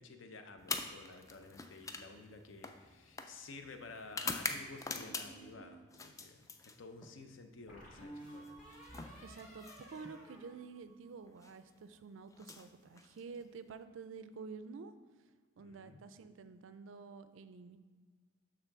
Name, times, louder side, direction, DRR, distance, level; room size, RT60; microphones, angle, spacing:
voice 1, 0.0-8.6 15.6-16.0, left 3 dB, 70° left, 6 dB, 0.6 m, -52 dB
sound 1, 0.6-5.5 5.9-7.2 8.4-10.2 11.3-11.5 12.3-13.5, left 4 dB, 15° left, 0.3 m, -44 dB
sound 2, 4.9-5.8 7.7-11.3, right 1 dB, 45° left, 1.5 m, -53 dB
voice 2, 9.2-14.9 15.6-17.8, right 5 dB, 70° right, 11 dB, 0.4 m, -49 dB
6.8 x 3.7 x 5.9 m, 1.5 s
head